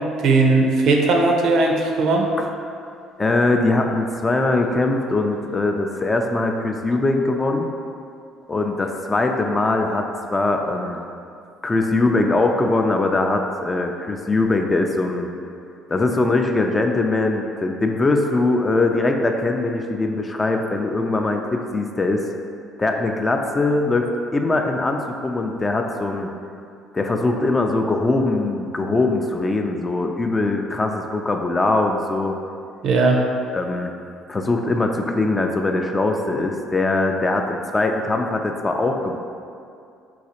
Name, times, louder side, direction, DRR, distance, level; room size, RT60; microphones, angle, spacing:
voice 1, 0.2-2.2 32.8-33.2, right 3 dB, 65° right, 1 dB, 0.4 m, -17 dB
voice 2, 3.2-7.7 8.5-10.1 10.3-11.0 11.6-15.3 15.9-22.2 22.8-26.3 26.9-32.3 33.5-33.9 34.3-39.2, left 2 dB, 25° left, 3 dB, 0.3 m, -21 dB
3.8 x 2.4 x 2.9 m, 2.4 s
hypercardioid pair, 60°, 0 cm